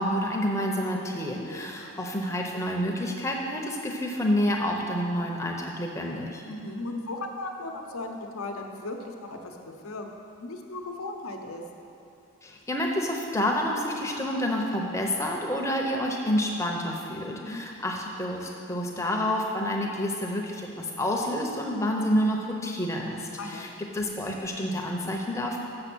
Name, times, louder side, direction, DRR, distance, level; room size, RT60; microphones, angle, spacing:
voice 1, 0.0-6.4 12.4-23.7 23.9-25.6, equal, 15° left, 0 dB, 0.7 m, -28 dB
voice 2, 1.5-1.8 6.5-10.1 10.4-11.6 17.4-17.6 23.4-23.7, left 2 dB, 80° left, 3 dB, 0.8 m, -37 dB
6.8 x 6.8 x 6.1 m, 2.7 s
head